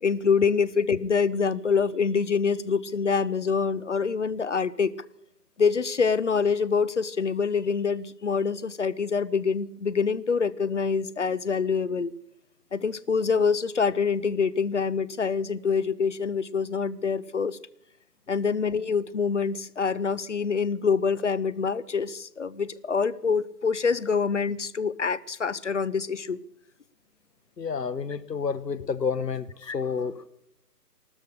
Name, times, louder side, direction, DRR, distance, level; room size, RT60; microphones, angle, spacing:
voice 1, 0.0-5.0 5.6-12.2 12.7-17.6 18.3-26.4 29.7-29.8, left 5 dB, 50° left, 0.6 m, -25 dB
voice 2, 27.6-30.3, left 5 dB, 80° left, 1.0 m, -30 dB
15.0 x 12.5 x 6.7 m
figure-of-eight pair, 150°, 48 cm